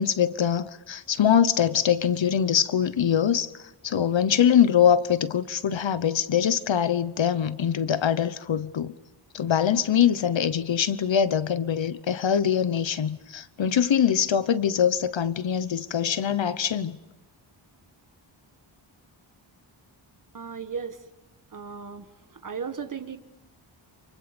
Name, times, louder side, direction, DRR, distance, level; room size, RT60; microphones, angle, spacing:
voice 1, 0.0-8.9 9.3-17.0, left 8 dB, 70° left, 1.1 m, -23 dB
voice 2, 20.3-21.0 21.5-23.2, right 6 dB, 40° right, 1.7 m, -36 dB
29.5 x 28.0 x 5.3 m
wide cardioid pair, 165°, 47 cm